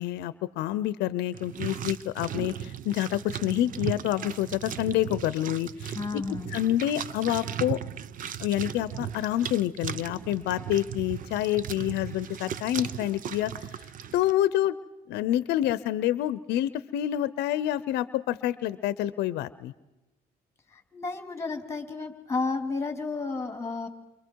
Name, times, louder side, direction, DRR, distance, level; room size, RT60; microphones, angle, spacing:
voice 1, 0.0-6.2 6.5-7.8 8.4-13.5 14.1-14.7 15.1-19.7, left 13 dB, 85° left, 16 dB, 0.7 m, -28 dB
sound 1, 1.3-14.3, right 9 dB, 55° right, 0.8 m, -37 dB
voice 2, 5.9-6.5 20.7-23.9, left 4 dB, 15° left, 6 dB, 2.9 m, -32 dB
29.5 x 25.0 x 4.7 m, 1.0 s
cardioid pair, 110°, 17 cm